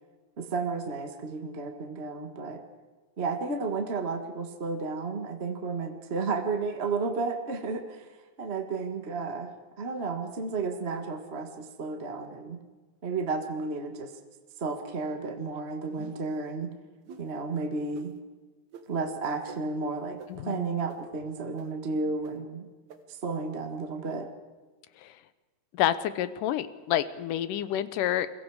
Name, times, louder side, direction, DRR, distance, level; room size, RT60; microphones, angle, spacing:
voice 1, 0.4-2.6 3.2-8.1 8.4-9.5 9.8-12.6 13.0-14.1 14.6-16.7 17.2-18.1 18.9-22.7 23.1-24.3, right 4 dB, 40° right, 6 dB, 0.8 m, -32 dB
sound 1, 15.9-16.4 17.1-17.2 17.9-18.1 18.7-18.8 19.5-19.6 20.2-20.3 20.9-21.0 21.6-21.7 22.2-22.3 22.9-23.0, right 7 dB, 60° right, 2.6 m, -45 dB
voice 2, 20.3-20.7 25.0-25.2 25.7-28.3, left 11 dB, 75° left, 14 dB, 2.4 m, -29 dB
29.0 x 22.0 x 4.9 m, 1.3 s
omnidirectional pair, 3.9 m